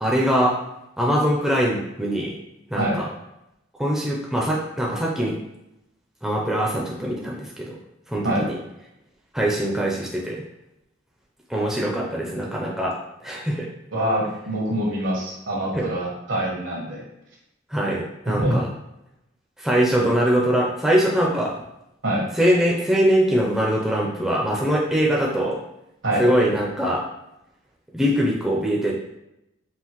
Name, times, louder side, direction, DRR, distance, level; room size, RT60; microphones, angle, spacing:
voice 1, 0.0-0.6 1.0-2.3 2.7-3.1 3.8-5.3 6.2-7.8 8.1-8.6 9.3-10.4 11.5-13.0 13.2-13.7 15.7-15.9 17.7-18.7 19.6-21.5 22.3-25.6 26.2-27.0 27.9-28.9, equal, ahead, -3 dB, 0.5 m, -22 dB
voice 2, 13.9-17.0 18.4-18.5 22.0-22.3 26.0-26.2, right 1 dB, 75° right, -3 dB, 1.3 m, -25 dB
5.6 x 2.5 x 3.0 m, 0.87 s
head